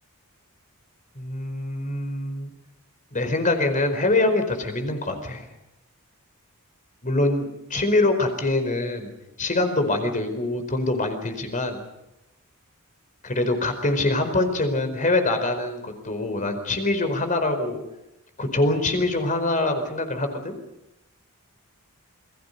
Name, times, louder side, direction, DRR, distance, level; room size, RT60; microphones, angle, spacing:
voice 1, 1.2-2.5 3.1-5.4 7.0-9.1 9.4-11.8 13.2-17.8 18.4-20.6, left 2 dB, 35° left, 7 dB, 4.6 m, -24 dB
28.5 x 23.0 x 5.5 m, 0.91 s
head